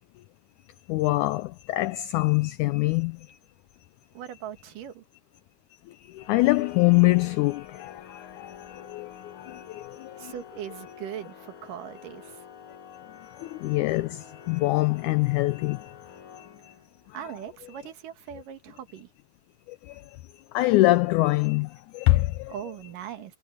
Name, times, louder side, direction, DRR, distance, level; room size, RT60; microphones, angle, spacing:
voice 1, 0.9-3.4 5.7-10.3 13.3-16.7 17.1-17.2 19.7-22.5, left 19 dB, 90° left, 1.7 m, -25 dB
voice 2, 4.1-5.0 10.2-12.4 17.1-19.1 22.5-23.4, right 10 dB, 70° right, 3.1 m, -40 dB
Organ, 6.2-17.1, left 8 dB, 45° left, 2.4 m, -47 dB
omnidirectional pair, 4.0 m